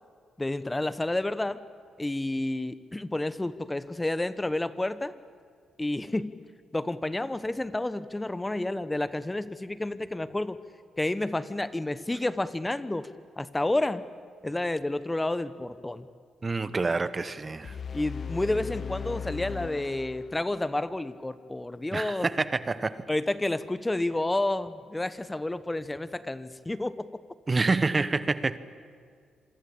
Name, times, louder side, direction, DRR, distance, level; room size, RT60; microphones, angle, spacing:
voice 1, 0.4-1.6 2.0-5.1 5.8-6.3 6.7-10.6 11.0-13.1 13.4-14.0 14.4-16.1 17.9-22.3 23.1-26.9, left 2 dB, 15° left, 1.0 m, -30 dB
voice 2, 16.4-17.8 21.9-23.0 27.5-28.6, right 3 dB, 30° right, 1.1 m, -27 dB
sound 1, 17.6-20.7, left 6 dB, 50° left, 0.7 m, -37 dB
27.0 x 24.0 x 8.6 m
supercardioid pair, 65°, 0 cm